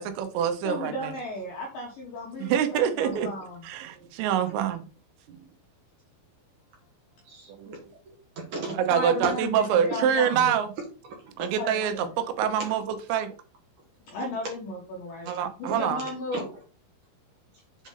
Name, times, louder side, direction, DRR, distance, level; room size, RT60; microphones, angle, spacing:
voice 1, 0.0-1.1 2.4-3.3 3.6-4.8 7.6-7.7 8.8-10.7 11.4-13.3 15.3-16.0, right 8 dB, 90° right, 3.5 m, -26 dB
voice 2, 0.6-3.7 8.7-10.5 11.6-12.2 14.1-15.3 15.6-16.5, left 1 dB, 75° left, 2.0 m, -35 dB
voice 3, 7.2-8.8 10.3-10.5 11.2-11.5 15.3-15.4 15.6-15.8 16.3-16.4, right 3 dB, 65° right, 2.1 m, -39 dB
7.7 x 4.2 x 3.8 m
omnidirectional pair, 5.6 m